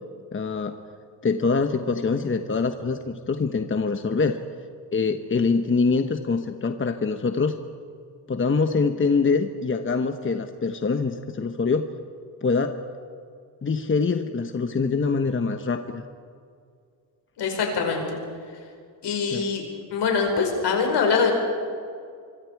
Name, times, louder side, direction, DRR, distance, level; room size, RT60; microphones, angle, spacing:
voice 1, 0.3-0.8 1.2-4.4 4.9-7.6 8.3-11.9 12.4-12.8 13.6-16.0 19.3-19.5, left 4 dB, 30° left, 7 dB, 1.2 m, -24 dB
voice 2, 17.4-18.2 19.0-19.6 19.9-21.4, left 5 dB, 70° left, 2 dB, 5.4 m, -23 dB
25.0 x 24.0 x 4.8 m, 2.2 s
cardioid pair, 90°, 42 cm